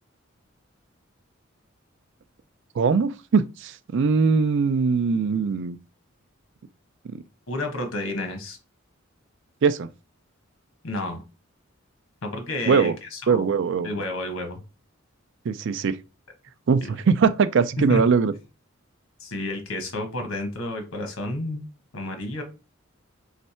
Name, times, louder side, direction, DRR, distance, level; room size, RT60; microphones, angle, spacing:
voice 1, 2.8-5.8 7.1-7.2 9.6-9.9 12.7-13.0 13.3-13.9 15.5-16.0 16.7-18.3, right 5 dB, 60° right, 0.4 m, -21 dB
voice 2, 7.5-8.6 10.8-11.2 12.2-13.5 13.8-14.6 16.8-16.9 17.9-18.0 19.2-21.6 21.9-22.4, left 1 dB, 85° left, 1.2 m, -31 dB
3.5 x 3.3 x 4.3 m
head